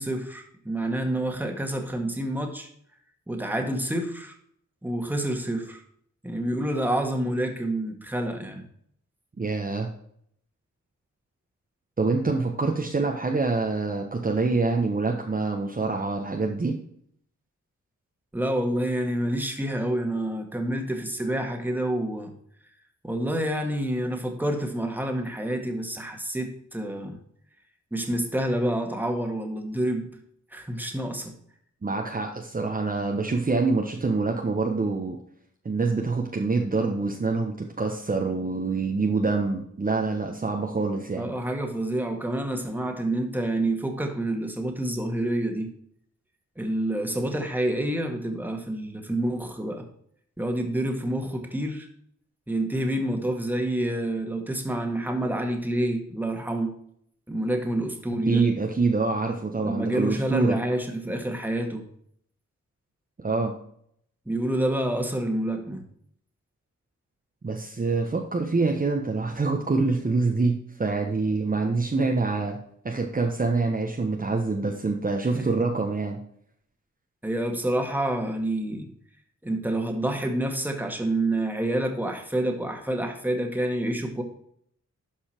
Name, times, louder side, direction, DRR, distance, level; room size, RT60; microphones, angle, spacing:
voice 1, 0.0-2.7 3.3-4.4 4.8-5.8 6.2-8.7 18.3-22.3 23.0-27.2 27.9-30.1 30.5-31.3 41.2-45.7 46.6-49.9 50.4-51.9 52.5-56.7 57.3-58.5 59.6-61.8 64.3-65.8 75.3-75.7 77.2-78.9 79.4-84.2, right 1 dB, 5° right, 3 dB, 1.9 m, -28 dB
voice 2, 9.4-9.9 12.0-16.8 31.8-35.2 35.6-41.3 58.3-60.6 63.2-63.5 67.4-72.6 72.8-76.2, right 3 dB, 30° right, 2 dB, 1.2 m, -26 dB
12.0 x 5.5 x 4.5 m, 0.66 s
wide cardioid pair, 110°, 30 cm